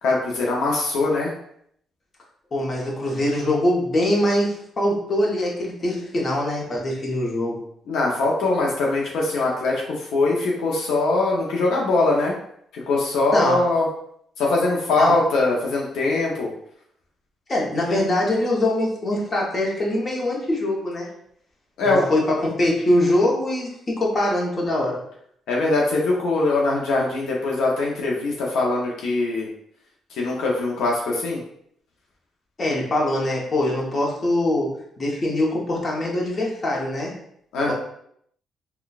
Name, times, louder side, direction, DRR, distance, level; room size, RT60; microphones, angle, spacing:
voice 1, 0.0-1.3 7.9-12.3 12.9-13.9 14.4-16.5 21.8-22.1 25.5-29.5 30.1-31.4 37.5-37.7, left 2 dB, 80° left, -3 dB, 0.6 m, -22 dB
voice 2, 2.5-7.6 13.3-13.7 15.0-15.1 17.5-21.1 21.8-25.0 32.6-37.1 37.7-37.8, left 1 dB, 35° left, -2 dB, 0.9 m, -23 dB
3.8 x 2.2 x 2.3 m, 0.69 s
cardioid pair, 90°, 0 cm